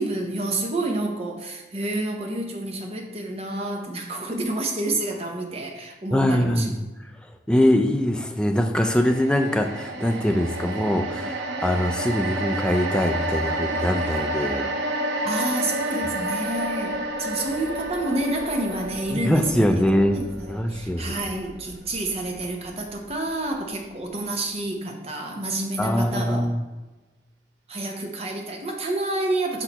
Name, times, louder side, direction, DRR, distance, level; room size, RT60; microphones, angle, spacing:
voice 1, 0.0-6.7 15.2-19.7 20.1-26.5 27.7-29.6, right 2 dB, 35° right, 2 dB, 0.8 m, -29 dB
voice 2, 6.1-6.8 7.5-14.7 19.1-20.2 20.5-21.2 25.8-26.6, left 1 dB, 5° left, 4 dB, 0.3 m, -22 dB
sound 1, 8.8-23.1 23.5-23.6, right 1 dB, 80° right, 0.9 m, -30 dB
6.0 x 5.6 x 2.9 m, 1.2 s
head